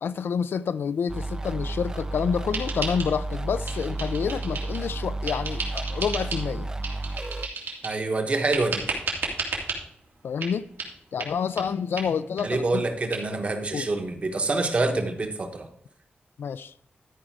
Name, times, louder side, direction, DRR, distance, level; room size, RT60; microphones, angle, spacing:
voice 1, 0.0-6.7 10.2-10.7 11.1-12.8 13.7-13.9 16.4-16.7, left 7 dB, 85° left, 0.4 m, -28 dB
sound 1, 1.1-7.5, right 2 dB, 20° right, 0.4 m, -32 dB
sound 2, 2.5-3.4 3.7-4.9 5.3-6.5 6.8-8.0 8.5-9.8 10.4-10.5 10.8-10.9 11.2-11.3 11.6-11.7 12.0-12.1 12.4-12.5 12.7-12.8 13.1-13.2, right 4 dB, 80° right, 2.3 m, -33 dB
voice 2, 7.8-9.0 12.4-15.7, right 3 dB, 35° right, 1.0 m, -26 dB
13.0 x 5.0 x 4.6 m
wide cardioid pair, 180°, 4 cm